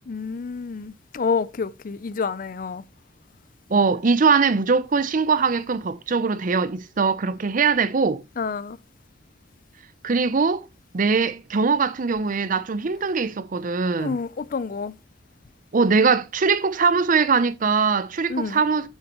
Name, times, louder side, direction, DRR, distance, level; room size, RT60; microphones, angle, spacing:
voice 1, 0.1-2.8 8.4-8.8 14.0-14.9 18.3-18.6, left 5 dB, 50° left, 0.5 m, -28 dB
voice 2, 3.7-8.2 10.0-10.7 10.9-14.2 15.7-18.9, right 5 dB, 45° right, 0.6 m, -21 dB
9.0 x 6.7 x 3.0 m
head